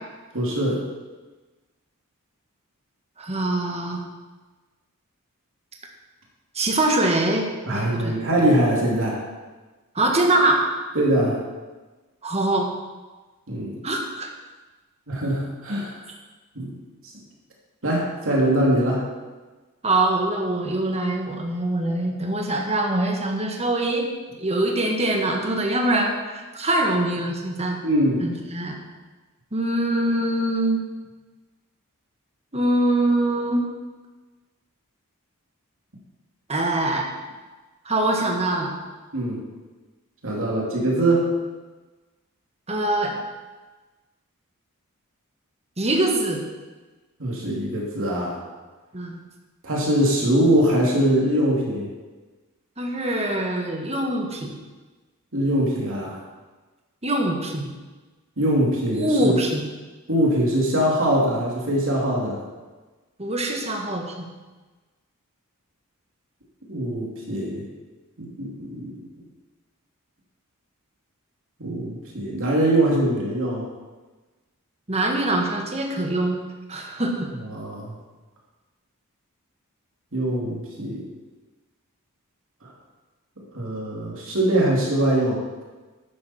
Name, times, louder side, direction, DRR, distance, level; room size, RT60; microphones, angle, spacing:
voice 1, 0.3-0.8 7.7-9.2 10.9-11.4 13.5-13.8 15.1-16.0 16.5-16.7 17.8-19.0 27.8-28.3 39.1-39.4 40.2-41.3 47.2-48.4 49.6-51.9 55.3-56.2 58.4-59.3 60.1-62.4 66.7-67.6 68.2-69.0 71.6-73.7 77.5-77.9 80.1-81.0 83.5-85.4, right 1 dB, 65° right, -3 dB, 2.9 m, -22 dB
voice 2, 3.2-4.0 6.5-8.2 10.0-10.6 12.2-12.7 13.8-14.3 19.8-24.1 24.4-27.8 28.2-28.8 29.5-30.9 32.5-33.6 36.5-37.1 37.9-38.7 42.7-43.1 45.8-46.5 48.9-49.2 52.8-54.5 57.0-57.7 58.9-59.6 63.2-64.3 74.9-76.4 76.7-77.3, right 1 dB, 30° right, 1 dB, 1.8 m, -23 dB
12.0 x 9.8 x 4.4 m, 1.3 s
head